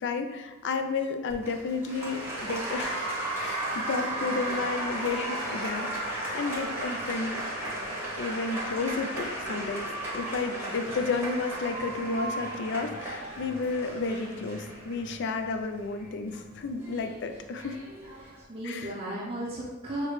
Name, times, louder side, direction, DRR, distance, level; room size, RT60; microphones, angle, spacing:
voice 1, 0.0-3.1 3.4-7.4 8.2-17.8 18.6-19.0, left 4 dB, 55° left, 6 dB, 0.3 m, -32 dB
Applause, 1.3-18.4, right 1 dB, 10° right, 0.9 m, -35 dB
voice 2, 4.2-4.6 18.2-20.1, right 1 dB, 30° right, -5 dB, 0.5 m, -36 dB
6.5 x 2.2 x 3.1 m, 1.1 s
head